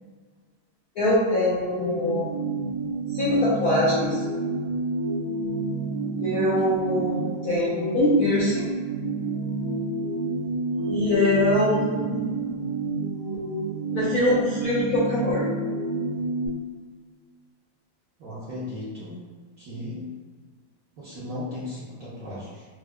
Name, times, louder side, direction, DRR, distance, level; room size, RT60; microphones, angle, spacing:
voice 1, 1.0-2.5 3.1-4.2 6.2-8.6 10.9-12.2 13.9-15.5, left 1 dB, 70° left, -8 dB, 0.9 m, -23 dB
sound 1, 1.6-16.5, right 3 dB, 85° right, 1.6 m, -29 dB
voice 2, 18.2-19.1 19.6-20.1 21.0-22.6, left 1 dB, 65° right, -10 dB, 0.8 m, -36 dB
4.6 x 2.0 x 2.2 m, 1.5 s
omnidirectional pair, 2.2 m